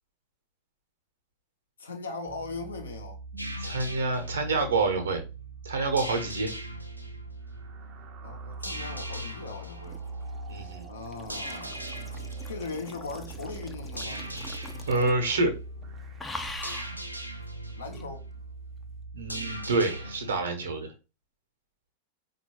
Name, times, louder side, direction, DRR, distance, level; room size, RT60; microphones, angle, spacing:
voice 1, 1.8-3.2 8.2-10.0 10.9-11.8 12.5-14.2 17.7-18.3, left 3 dB, 70° left, 0.9 m, -39 dB
sound 1, 2.3-20.1, right 4 dB, 35° right, 0.7 m, -43 dB
sound 2, 3.4-20.4, equal, 90° right, 0.5 m, -41 dB
voice 2, 3.6-5.2 5.6-6.5 10.5-10.9 14.9-15.5 19.1-20.9, right 3 dB, 70° right, 1.0 m, -27 dB
sound 3, 9.6-15.3 15.6-15.8 16.2-17.0 17.9-18.1, left 2 dB, 10° left, 0.5 m, -43 dB
4.4 x 2.7 x 3.0 m
figure-of-eight pair, 90°, 0 cm